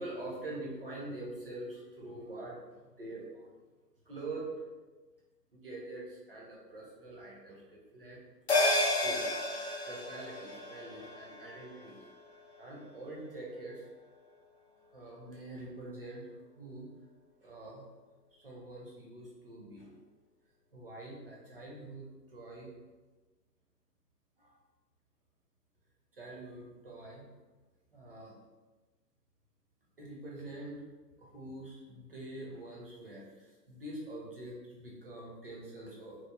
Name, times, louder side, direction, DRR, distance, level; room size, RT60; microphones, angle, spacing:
voice 1, 0.0-2.6 3.0-3.5 4.1-4.5 5.5-8.2 9.0-9.3 9.9-12.0 12.6-13.9 14.7-16.3 16.6-16.9 17.4-17.9 18.3-20.0 20.7-22.7 24.4-24.6 26.1-27.3 27.9-28.3 30.0-30.8 31.2-36.2, right 2 dB, 35° right, -3 dB, 0.5 m, -45 dB
sound 1, 8.5-13.2 13.5-13.6, left 1 dB, 45° left, 0.4 m, -33 dB
2.9 x 2.1 x 2.2 m, 1.2 s
figure-of-eight pair, 135°, 49 cm